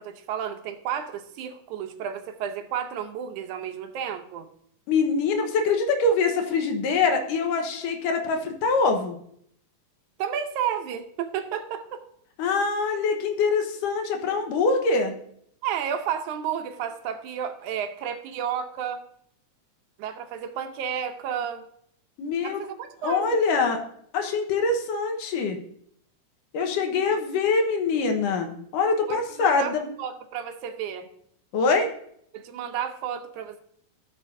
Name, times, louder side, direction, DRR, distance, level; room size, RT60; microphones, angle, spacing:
voice 1, 0.0-4.5 10.2-12.0 15.6-19.0 20.0-21.7 22.4-23.4 29.1-29.7 30.0-31.1 32.3-33.6, right 8 dB, 75° right, 7 dB, 2.1 m, -32 dB
voice 2, 4.9-9.2 12.4-15.1 22.2-22.6 23.0-23.8 24.1-25.6 26.5-29.9 31.5-31.9, left 4 dB, 90° left, 4 dB, 2.7 m, -24 dB
17.0 x 6.4 x 2.6 m, 0.68 s
omnidirectional pair, 3.6 m